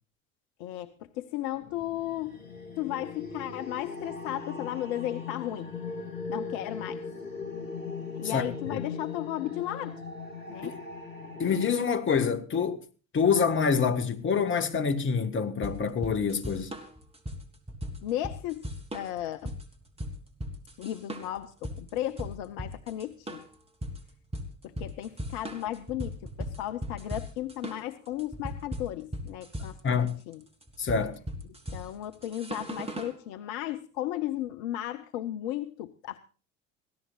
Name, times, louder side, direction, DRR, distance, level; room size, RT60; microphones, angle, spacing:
voice 1, 0.6-2.4 2.8-5.7 6.3-7.1 8.1-10.0 10.5-10.7 18.0-18.7 18.9-19.6 20.8-23.4 24.6-30.4 31.7-36.2, left 13 dB, 55° left, 1.0 m, -35 dB
sound 1, 1.6-11.8, left 4 dB, 85° left, 2.5 m, -39 dB
voice 2, 11.4-12.8 13.1-16.7 29.6-30.2 30.8-31.1, left 6 dB, 30° left, 1.9 m, -26 dB
sound 2, 15.6-33.2, equal, 15° right, 3.5 m, -38 dB
25.0 x 16.5 x 2.5 m
figure-of-eight pair, 65°, 39 cm